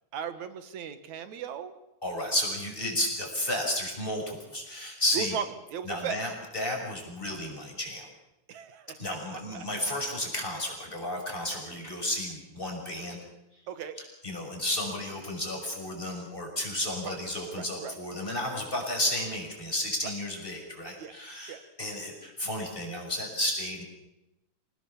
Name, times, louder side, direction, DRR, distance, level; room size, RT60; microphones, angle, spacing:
voice 1, 0.1-1.7 5.1-5.4 5.7-6.3 8.5-9.7 13.7-14.0 17.0-17.1 17.5-18.0 20.0-20.1 21.0-21.1 21.5-21.6, right 7 dB, 75° right, 10 dB, 2.9 m, -37 dB
voice 2, 2.0-5.3 5.9-8.1 9.0-13.2 14.2-23.8, left 1 dB, 15° left, 1 dB, 6.4 m, -32 dB
27.5 x 19.0 x 7.3 m, 0.91 s
omnidirectional pair, 3.4 m